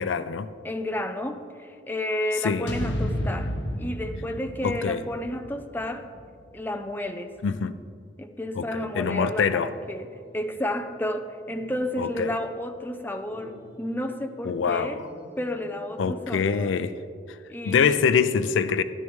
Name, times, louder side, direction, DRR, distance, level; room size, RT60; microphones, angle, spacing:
voice 1, 0.0-0.5 2.4-2.7 4.6-5.0 7.4-7.8 8.6-9.7 12.0-12.3 14.4-15.1 16.0-16.9 17.7-18.8, left 6 dB, 90° left, 13 dB, 0.4 m, -24 dB
voice 2, 0.6-6.1 6.5-7.4 8.2-15.0 15.4-16.8 17.5-18.0, left 1 dB, 10° left, 7 dB, 0.5 m, -32 dB
sound 1, 2.7-6.9, equal, 70° left, 1.0 m, -32 dB
sound 2, 9.2-11.2 11.5-12.9 13.3-14.7 15.0-16.3, equal, 45° left, 2.6 m, -49 dB
12.5 x 11.5 x 3.1 m, 2.3 s
head